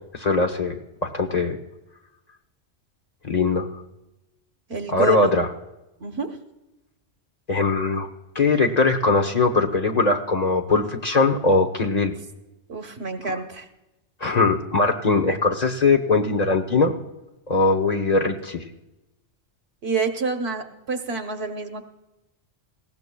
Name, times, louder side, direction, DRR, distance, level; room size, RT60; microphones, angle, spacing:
voice 1, 0.1-0.8 1.0-1.6 3.2-3.7 4.9-5.5 7.5-8.1 8.3-12.1 14.2-16.9 17.5-18.6, left 3 dB, 40° left, 4 dB, 0.9 m, -21 dB
voice 2, 4.7-5.3 6.0-6.3 12.7-13.6 19.8-21.8, right 4 dB, 65° right, 6 dB, 1.3 m, -28 dB
19.5 x 16.0 x 2.3 m, 0.98 s
omnidirectional pair, 1.2 m